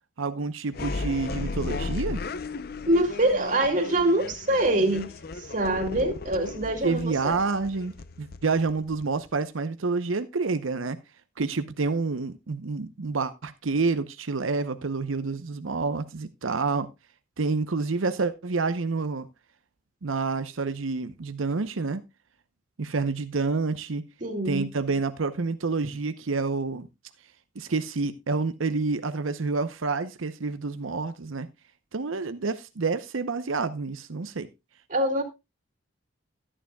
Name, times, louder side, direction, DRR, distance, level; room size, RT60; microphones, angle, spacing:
voice 1, 0.2-2.2 6.8-11.0 11.4-16.9 17.4-19.3 20.0-22.0 22.8-24.0 24.4-26.9 27.6-31.5 31.9-34.5, right 4 dB, 90° right, 0.8 m, -28 dB
sound 1, 0.7-9.4, left 3 dB, 50° left, 0.6 m, -36 dB
voice 2, 2.9-5.1 5.5-7.3 24.2-24.7 34.9-35.2, right 1 dB, 40° right, 2.3 m, -24 dB
13.5 x 9.9 x 2.2 m
head